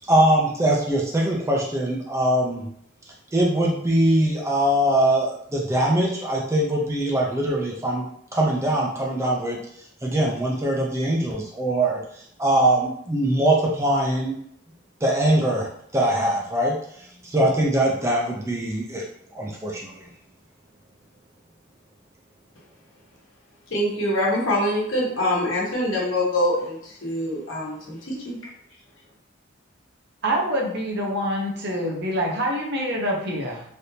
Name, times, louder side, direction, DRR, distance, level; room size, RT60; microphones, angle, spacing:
voice 1, 0.0-2.7 3.3-8.0 8.3-9.6 10.0-14.3 15.0-19.0 19.3-20.1, right 1 dB, 15° right, -2 dB, 0.4 m, -22 dB
voice 2, 23.7-28.4, left 1 dB, 70° left, -5 dB, 1.1 m, -24 dB
voice 3, 30.2-33.6, equal, 55° right, -2 dB, 0.7 m, -26 dB
3.4 x 2.6 x 2.7 m, 0.67 s
head